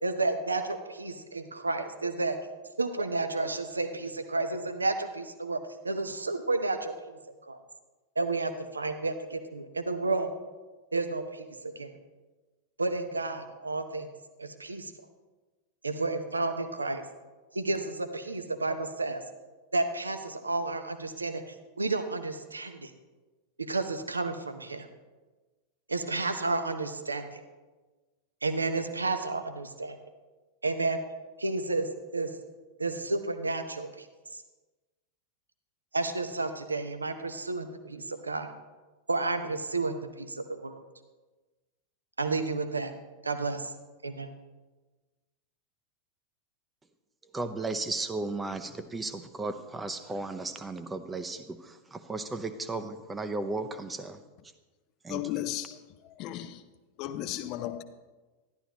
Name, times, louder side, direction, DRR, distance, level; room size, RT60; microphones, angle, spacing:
voice 1, 0.0-2.4 2.8-5.6 5.8-7.2 7.5-7.6 8.2-10.3 10.9-11.9 12.8-14.1 14.4-14.9 15.8-17.0 17.5-19.2 19.7-22.9 23.6-24.9 25.9-27.4 28.4-30.0 30.6-31.0 31.4-32.3 32.8-34.1 34.3-34.4 35.9-38.5 39.1-40.8 42.2-42.9 43.2-43.7 44.0-44.3, right 3 dB, 80° right, 8 dB, 0.7 m, -31 dB
voice 2, 47.3-54.2 55.0-55.4, right 3 dB, 15° right, 10 dB, 0.7 m, -35 dB
voice 3, 55.1-55.8 56.0-56.6 57.0-57.8, left 13 dB, 40° left, 11 dB, 0.6 m, -35 dB
12.0 x 11.0 x 2.9 m, 1.2 s
figure-of-eight pair, 90°, 0 cm